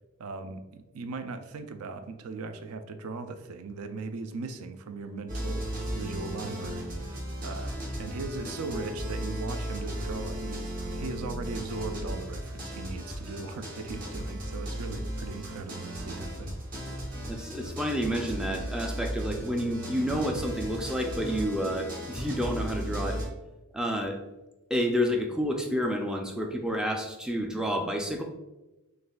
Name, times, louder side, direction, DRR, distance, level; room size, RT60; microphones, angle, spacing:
voice 1, 0.2-5.7 5.9-6.9 7.4-16.5, right 3 dB, 80° right, 9 dB, 0.4 m, -38 dB
sound 1, 5.3-23.3, equal, 40° right, 0.8 m, -36 dB
voice 2, 17.3-23.2 23.7-24.2 24.7-28.2, equal, 5° right, 2 dB, 0.3 m, -29 dB
6.3 x 2.4 x 2.3 m, 1.0 s
head